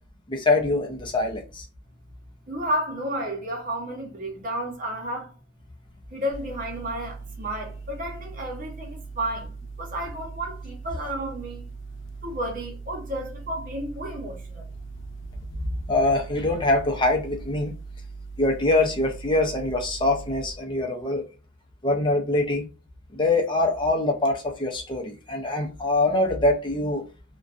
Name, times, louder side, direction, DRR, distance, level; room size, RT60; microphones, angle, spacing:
voice 1, 0.3-1.7 15.7-17.7 18.4-21.3 21.8-22.6 23.1-27.0, left 2 dB, 25° left, 0.5 m, -24 dB
voice 2, 2.5-5.3 6.1-11.6 12.2-14.6, right 1 dB, 45° right, 0.8 m, -32 dB
sound 1, 6.3-20.5, right 4 dB, 70° left, 0.4 m, -40 dB
2.5 x 2.2 x 2.4 m
head